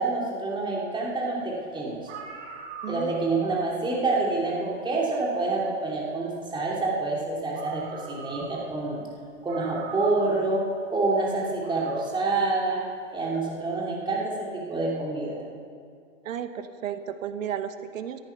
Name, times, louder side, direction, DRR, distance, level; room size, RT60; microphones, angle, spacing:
voice 1, 0.0-2.0 2.9-9.0 9.4-10.6 10.9-12.8 13.1-15.4, right 3 dB, 10° right, -4 dB, 2.9 m, -27 dB
sound 1, 1.6-1.7 2.0-3.4 4.8-4.9 7.1-7.2 7.5-8.7 9.0-9.1 9.5-10.4 11.5-12.1, right 5 dB, 55° right, 3.9 m, -41 dB
voice 2, 2.8-3.1 16.2-18.2, right 9 dB, 80° right, 10 dB, 1.2 m, -33 dB
14.0 x 13.5 x 5.8 m, 2.2 s
hypercardioid pair, 125°, 39 cm